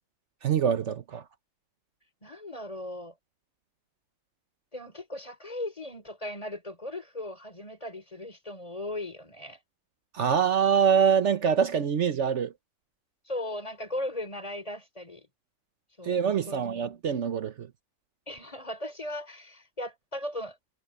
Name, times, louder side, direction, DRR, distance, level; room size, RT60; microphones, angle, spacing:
voice 1, 0.4-1.2 10.1-12.5 16.0-17.7, right 7 dB, 65° right, 1.2 m, -24 dB
voice 2, 2.2-3.2 4.7-9.6 13.3-15.3 16.0-16.2 16.5-16.7 18.3-20.6, left 1 dB, 25° left, 3.9 m, -37 dB
omnidirectional pair, 1.4 m